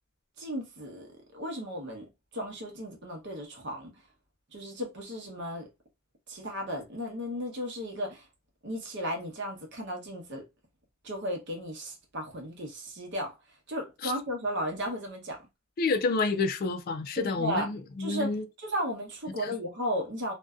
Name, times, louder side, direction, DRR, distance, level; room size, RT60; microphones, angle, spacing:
voice 1, 0.4-3.9 4.5-5.7 6.3-8.2 8.6-10.4 11.0-13.3 13.7-15.4 17.2-17.7 18.0-18.3 18.6-20.3, equal, 60° right, 0.8 m, -35 dB
voice 2, 15.8-18.5 19.4-19.5, left 3 dB, 45° left, 0.3 m, -29 dB
2.6 x 2.2 x 2.3 m
head